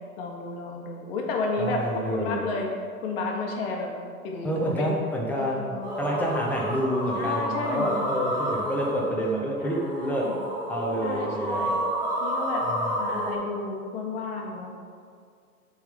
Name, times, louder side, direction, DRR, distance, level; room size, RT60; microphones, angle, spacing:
voice 1, 0.2-2.7 3.0-3.9 4.2-4.9 5.4-5.9 7.2-8.1 9.6-10.4 11.0-11.7 12.2-12.6 13.0-14.9, left 3 dB, 40° left, 1 dB, 1.3 m, -32 dB
voice 2, 1.6-2.5 4.4-10.3 10.7-11.7 12.6-13.3, equal, 5° left, -3 dB, 0.8 m, -29 dB
sound 1, 5.8-13.3, equal, 15° right, 1.5 m, -30 dB
7.1 x 3.9 x 5.1 m, 2.2 s
figure-of-eight pair, 115°, 44 cm